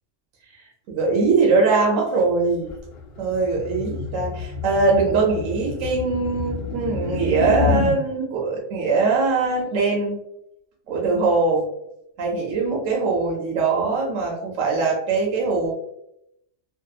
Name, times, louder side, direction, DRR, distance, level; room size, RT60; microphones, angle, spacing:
voice 1, 0.9-2.7 3.2-10.2 10.9-11.6 12.2-15.7, right 4 dB, 80° right, -2 dB, 1.0 m, -21 dB
sound 1, 2.7-8.0, left 5 dB, 65° left, 0.7 m, -28 dB
2.6 x 2.2 x 2.3 m, 0.79 s
omnidirectional pair, 1.4 m